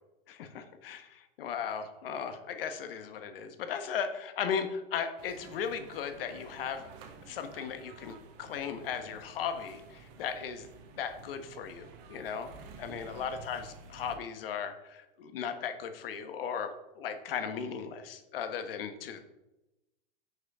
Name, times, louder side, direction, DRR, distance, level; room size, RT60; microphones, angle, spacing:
voice 1, 0.3-6.9 7.3-10.7 11.0-12.5 12.8-19.3, left 7 dB, 75° left, 8 dB, 1.6 m, -37 dB
sound 1, 5.2-14.2, right 5 dB, 50° right, 2.0 m, -52 dB
10.5 x 6.5 x 5.0 m, 0.97 s
hypercardioid pair, 130°, 29 cm